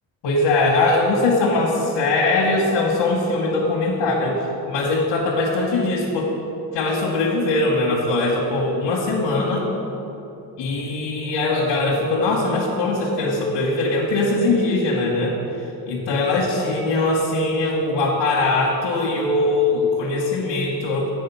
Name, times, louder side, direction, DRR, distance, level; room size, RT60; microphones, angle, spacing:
voice 1, 0.2-4.4 4.7-6.3 6.7-9.7 10.6-15.3 15.9-21.1, left 2 dB, 90° left, -4 dB, 1.3 m, -21 dB
8.5 x 4.6 x 6.8 m, 3.0 s
cardioid pair, 110°, 42 cm